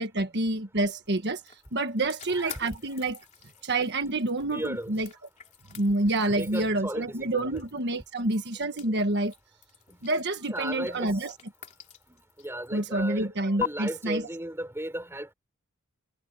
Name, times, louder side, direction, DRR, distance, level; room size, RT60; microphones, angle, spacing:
voice 1, 0.0-3.2 3.6-5.1 5.7-9.3 10.0-11.3 12.7-14.3, right 2 dB, 50° right, 1.5 m, -28 dB
sound 1, 1.0-12.9 13.6-13.7, left 9 dB, 35° left, 3.1 m, -45 dB
voice 2, 2.3-2.7 4.5-4.9 6.4-7.6 10.5-11.3 12.1-13.3 13.6-15.3, right 1 dB, 10° right, 4.3 m, -35 dB
head